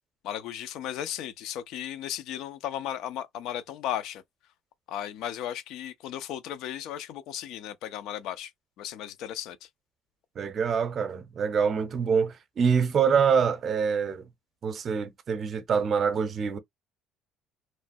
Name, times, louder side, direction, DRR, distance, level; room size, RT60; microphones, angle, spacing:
voice 1, 0.2-4.2 4.9-8.5 8.8-9.7, left 11 dB, 70° left, 0.5 m, -35 dB
voice 2, 10.4-14.3 14.6-16.6, right 6 dB, 40° right, 0.6 m, -25 dB
3.1 x 2.2 x 2.6 m
cardioid pair, 130°, 0 cm